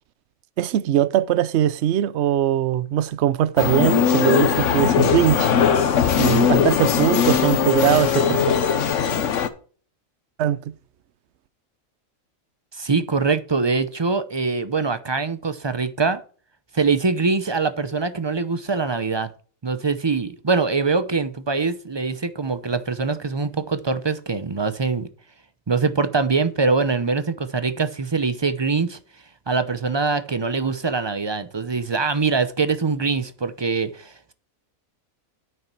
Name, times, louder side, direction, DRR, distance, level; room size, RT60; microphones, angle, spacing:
voice 1, 0.6-5.5 6.2-8.5 10.4-10.7, right 12 dB, 60° right, 0.8 m, -21 dB
sound 1, 3.6-9.5, left 7 dB, 60° left, 1.2 m, -19 dB
voice 2, 12.7-16.2 16.7-19.3 19.6-25.1 25.7-29.0 29.5-34.3, right 4 dB, 35° right, 0.4 m, -23 dB
9.3 x 6.5 x 4.5 m
omnidirectional pair, 1.5 m